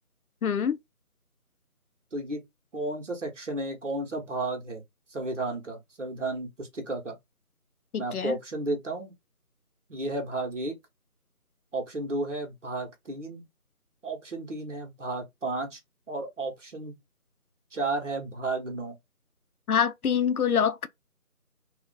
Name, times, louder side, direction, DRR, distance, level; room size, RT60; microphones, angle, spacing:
voice 1, 0.4-0.8 7.9-8.4 19.7-20.9, left 7 dB, 75° left, 0.5 m, -25 dB
voice 2, 2.1-2.4 2.7-4.8 5.1-7.2 8.0-9.1 9.9-10.8 11.7-13.5 14.0-15.8 16.1-17.0 17.7-19.0, right 2 dB, 55° right, 1.0 m, -33 dB
2.4 x 2.4 x 2.2 m
figure-of-eight pair, 165°, 44 cm